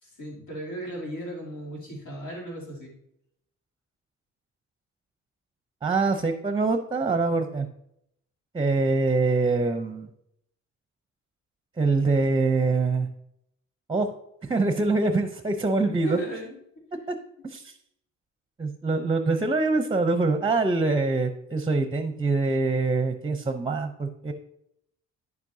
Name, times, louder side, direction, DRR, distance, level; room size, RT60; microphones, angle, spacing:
voice 1, 0.0-2.9 15.8-16.6, right 1 dB, 85° left, -4 dB, 3.0 m, -36 dB
voice 2, 5.8-7.7 8.5-10.1 11.8-13.1 13.9-14.1 14.4-16.2 17.1-17.2 17.4-17.7 18.6-24.3, right 3 dB, 15° right, 8 dB, 0.6 m, -24 dB
9.5 x 7.3 x 2.7 m, 0.77 s
cardioid pair, 90°, 30 cm